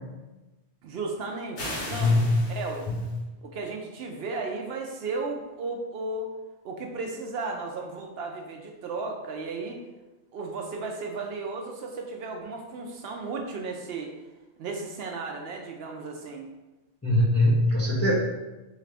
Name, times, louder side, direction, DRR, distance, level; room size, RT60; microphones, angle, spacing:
voice 1, 0.8-2.9 3.4-6.3 6.6-9.8 10.3-14.1 14.6-16.5, right 3 dB, 65° right, 2 dB, 0.7 m, -34 dB
sound 1, 1.6-3.2, left 1 dB, 80° left, 1.5 m, -37 dB
voice 2, 2.0-2.4 17.0-18.1, left 1 dB, 20° left, -4 dB, 0.4 m, -21 dB
3.8 x 3.2 x 3.3 m, 1.1 s
omnidirectional pair, 1.2 m